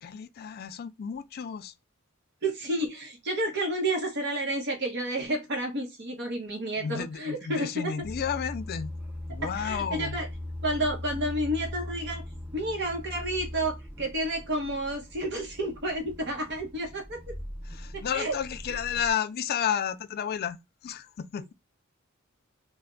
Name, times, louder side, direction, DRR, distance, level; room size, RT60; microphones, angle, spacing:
voice 1, 0.0-1.7 6.8-8.9 9.3-10.2 17.7-21.5, left 8 dB, 50° left, 0.3 m, -32 dB
voice 2, 2.4-7.9 9.4-10.3 10.6-12.2 12.5-17.3 17.9-18.3, right 1 dB, 55° right, 0.9 m, -30 dB
sound 1, 8.0-19.1, left 1 dB, 10° right, 0.5 m, -40 dB
3.2 x 2.1 x 3.7 m
head